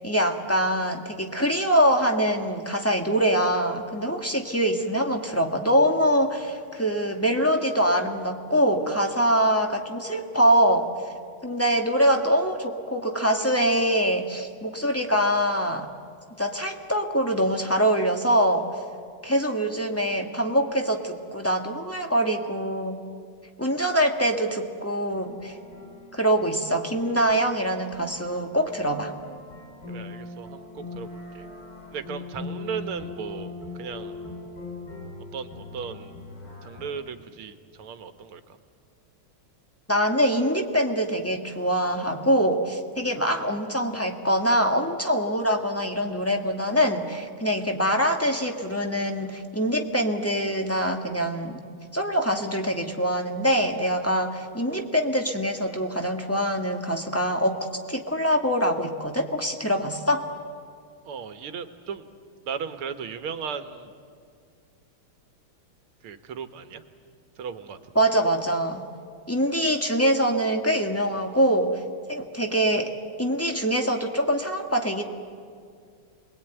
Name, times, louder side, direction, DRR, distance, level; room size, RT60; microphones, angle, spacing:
voice 1, 0.0-10.9 11.4-15.9 16.4-18.7 19.2-23.0 23.6-25.5 26.1-29.1 39.9-51.6 51.9-57.6 57.9-60.3 67.9-68.8 69.3-71.8 72.1-72.9 73.2-75.0, equal, 10° left, 3 dB, 1.4 m, -24 dB
sound 1, 25.1-36.9, left 3 dB, 45° left, 3.7 m, -41 dB
voice 2, 29.9-31.5 31.9-34.2 35.3-36.1 36.6-38.6 61.1-62.1 62.5-63.9 66.0-66.8 67.4-67.8, right 6 dB, 90° right, 9 dB, 2.1 m, -36 dB
28.0 x 21.0 x 9.1 m, 2.2 s
omnidirectional pair, 2.3 m